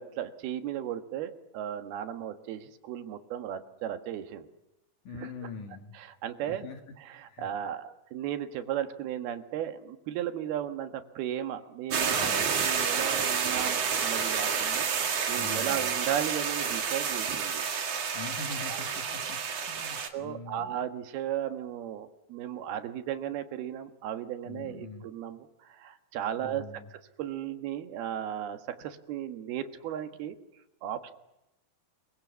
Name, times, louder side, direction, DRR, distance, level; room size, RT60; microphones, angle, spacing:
voice 1, 0.0-4.5 5.1-5.3 5.9-6.7 7.0-17.7 18.7-19.0 19.5-30.4 30.8-31.1, right 10 dB, 85° right, 8 dB, 3.5 m, -36 dB
voice 2, 5.0-5.9 6.5-6.8 7.3-7.5 12.1-12.5 15.4-15.9 18.1-19.4 19.7-20.8 24.4-25.1 26.4-26.9, left 4 dB, 55° left, 5 dB, 3.7 m, -43 dB
sound 1, 11.9-20.1, right 6 dB, 45° right, 2.7 m, -29 dB
27.5 x 23.0 x 7.1 m, 0.92 s
omnidirectional pair, 4.3 m